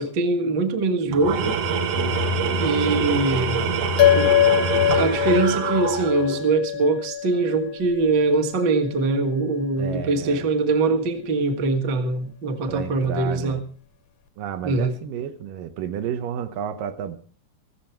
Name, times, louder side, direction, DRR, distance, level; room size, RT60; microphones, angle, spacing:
voice 1, 0.0-1.6 2.6-3.6 4.1-4.4 4.9-13.6 14.6-15.0, right 3 dB, 45° right, 6 dB, 1.6 m, -23 dB
Tools, 1.1-6.5, right 4 dB, 60° right, 1.8 m, -25 dB
sound 1, 4.0-8.7, left 12 dB, 70° left, 1.6 m, -23 dB
voice 2, 9.8-10.5 12.7-13.6 14.4-17.2, right 8 dB, 75° right, 8 dB, 2.7 m, -31 dB
15.0 x 14.5 x 4.5 m, 0.42 s
omnidirectional pair, 4.0 m